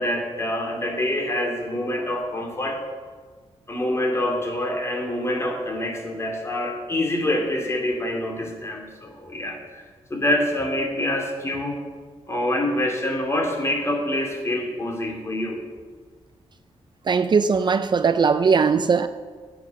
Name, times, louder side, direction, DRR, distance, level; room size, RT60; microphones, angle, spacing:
voice 1, 0.0-2.8 3.7-9.8 10.1-11.8 12.3-15.6, left 1 dB, 25° left, 2.6 m, -26 dB
voice 2, 17.1-19.1, right 5 dB, 40° right, 0.5 m, -19 dB
15.5 x 8.7 x 6.5 m
wide cardioid pair, 130°, 11 cm